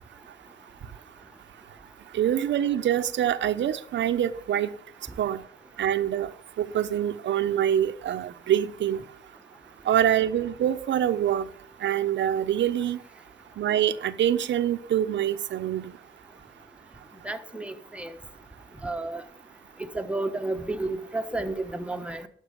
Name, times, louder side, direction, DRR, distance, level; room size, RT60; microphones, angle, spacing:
voice 1, 2.1-4.7 5.2-5.4 5.8-6.3 6.6-9.0 9.8-11.5 11.8-13.0 13.6-15.9, right 10 dB, 65° right, 1.0 m, -25 dB
voice 2, 17.2-18.1 18.8-19.2 19.8-22.3, right 2 dB, 5° right, 1.4 m, -31 dB
12.0 x 6.4 x 7.6 m
cardioid pair, 90°, 20 cm